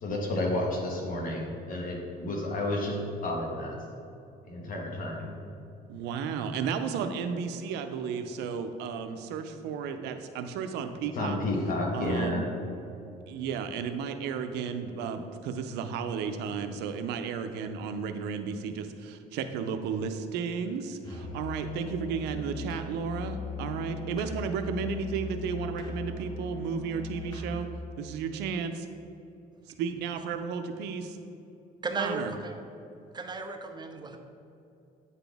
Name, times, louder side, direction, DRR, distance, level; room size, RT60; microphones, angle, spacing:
voice 1, 0.0-3.0 3.2-3.8 4.4-5.3 11.1-12.5, left 1 dB, 55° left, -1 dB, 1.4 m, -31 dB
voice 2, 5.9-11.4 11.9-12.5 13.3-27.7 28.0-28.9 29.8-31.2 32.0-32.3, right 6 dB, 85° right, 8 dB, 0.5 m, -33 dB
Musical instrument, 21.0-27.8, left 3 dB, 25° left, 1.1 m, -39 dB
voice 3, 31.8-32.5 33.1-34.2, right 3 dB, 25° right, 5 dB, 0.5 m, -34 dB
8.9 x 4.1 x 3.4 m, 2.7 s
cardioid pair, 110°, 17 cm